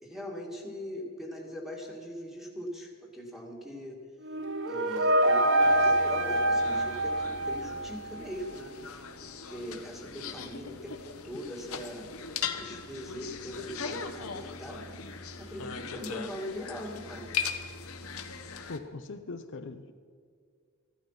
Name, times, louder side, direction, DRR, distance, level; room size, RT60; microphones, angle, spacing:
voice 1, 0.0-4.0 4.7-8.7 9.5-12.1 12.6-14.8 15.4-17.3 18.3-18.5, equal, ahead, -1 dB, 2.3 m, -41 dB
sound 1, 4.2-8.2, right 1 dB, 60° right, 0.9 m, -25 dB
sound 2, 5.6-18.8, left 6 dB, 75° left, 1.1 m, -40 dB
voice 2, 18.7-19.9, left 3 dB, 60° left, 8 dB, 0.7 m, -40 dB
15.5 x 12.5 x 5.8 m, 2.2 s
head